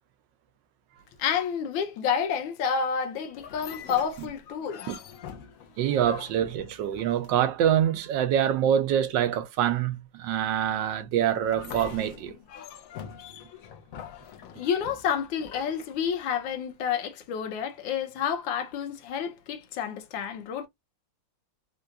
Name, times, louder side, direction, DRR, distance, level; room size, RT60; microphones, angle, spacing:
voice 1, 1.2-4.9 14.5-20.7, left 7 dB, 85° left, 1.4 m, -29 dB
sound 1, 3.3-7.6 11.4-16.5, left 8 dB, 70° left, 0.8 m, -44 dB
voice 2, 5.8-12.3, right 10 dB, 75° right, 1.3 m, -25 dB
3.7 x 2.3 x 2.6 m
omnidirectional pair, 2.1 m